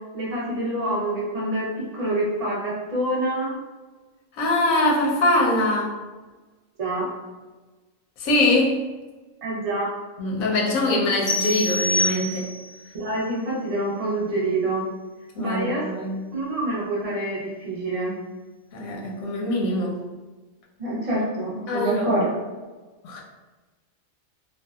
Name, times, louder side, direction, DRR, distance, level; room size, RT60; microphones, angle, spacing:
voice 1, 0.1-3.5 6.8-7.1 9.4-9.9 12.9-14.9 15.4-15.8 16.3-18.1 20.8-22.3, right 1 dB, 55° right, -5 dB, 0.4 m, -26 dB
voice 2, 4.4-5.9 8.2-8.8 10.2-12.5 15.3-16.2 18.7-20.1 21.7-22.2 23.0-23.2, left 1 dB, 90° left, -2 dB, 1.0 m, -23 dB
sound 1, 11.3-12.8, left 1 dB, 40° left, 0.5 m, -25 dB
2.6 x 2.2 x 2.2 m, 1.3 s
omnidirectional pair, 1.4 m